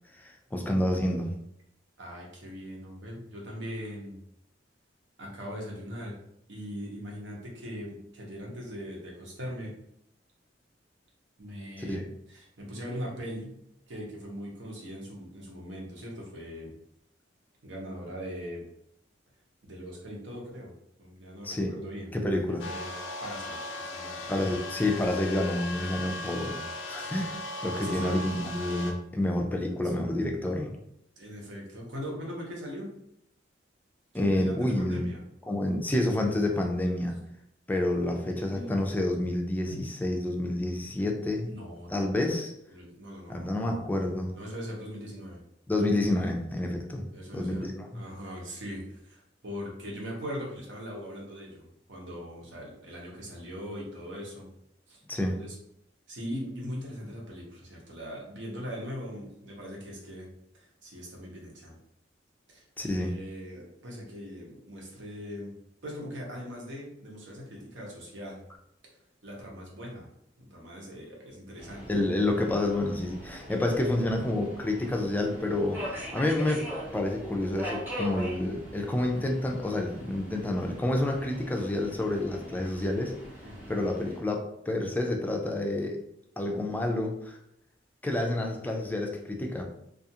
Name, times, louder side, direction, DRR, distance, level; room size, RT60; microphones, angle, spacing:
voice 1, 0.2-1.3 11.8-12.1 21.4-21.9 22.1-22.6 24.3-26.6 26.9-27.4 27.6-30.8 34.1-35.0 35.5-37.2 37.7-41.5 41.9-42.5 43.3-44.3 45.7-47.1 47.3-47.9 55.1-55.3 62.8-63.1 71.9-76.7 76.9-83.1 83.7-86.0 86.4-87.4 88.0-89.6, left 1 dB, 10° left, 2 dB, 0.3 m, -29 dB
voice 2, 2.0-4.2 5.2-6.1 6.5-9.7 11.4-13.5 13.9-16.7 17.6-18.6 19.6-20.7 21.0-22.9 23.2-24.5 27.0-27.3 27.7-28.2 30.0-30.1 31.2-32.9 34.1-35.2 38.5-38.7 39.7-39.9 41.4-42.1 42.7-43.5 44.3-45.4 47.1-47.7 47.9-54.5 54.9-55.0 55.4-55.5 56.1-60.3 60.5-61.7 62.5-62.6 62.9-65.5 65.8-68.4 69.2-70.1 70.4-71.9 73.5-73.7 83.4-83.8, equal, 80° right, -2 dB, 0.8 m, -40 dB
sound 1, 22.6-28.9, left 2 dB, 90° left, 0.4 m, -37 dB
Subway metro underground, 71.6-84.2, equal, 10° right, 0.8 m, -42 dB
2.4 x 2.4 x 2.7 m, 0.77 s
head